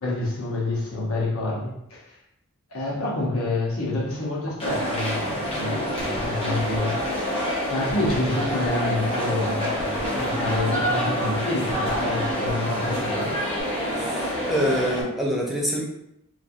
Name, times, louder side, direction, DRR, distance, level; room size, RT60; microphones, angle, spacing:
voice 1, 0.0-2.1 2.7-9.8 10.1-13.4, left 2 dB, 75° left, -4 dB, 0.9 m, -28 dB
sound 1, 4.6-15.0, equal, 25° left, 0.7 m, -27 dB
sound 2, 6.0-13.6, right 1 dB, 60° right, 0.6 m, -38 dB
voice 2, 13.9-15.8, equal, ahead, -3 dB, 0.4 m, -26 dB
3.0 x 2.4 x 2.5 m, 0.80 s
head